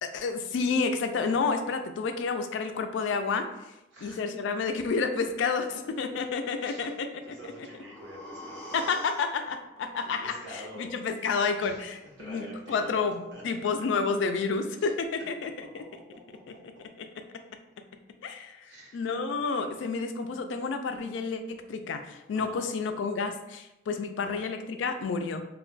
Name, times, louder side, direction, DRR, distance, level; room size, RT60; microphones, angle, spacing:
voice 1, 0.0-3.5 4.0-7.4 8.7-15.9 17.0-17.1 18.2-25.4, left 4 dB, 75° left, 7 dB, 0.3 m, -30 dB
voice 2, 3.9-4.2 6.6-7.0 7.2-8.9 10.2-10.9 11.6-12.9 13.3-13.4 14.8-14.9 15.8-15.9 16.3-16.6 18.6-19.1 22.3-22.6 24.2-24.4, equal, 75° right, -4 dB, 1.0 m, -46 dB
sound 1, 7.2-11.2 11.5-11.6, equal, 10° left, 0.4 m, -47 dB
2.2 x 2.2 x 3.8 m, 0.92 s
head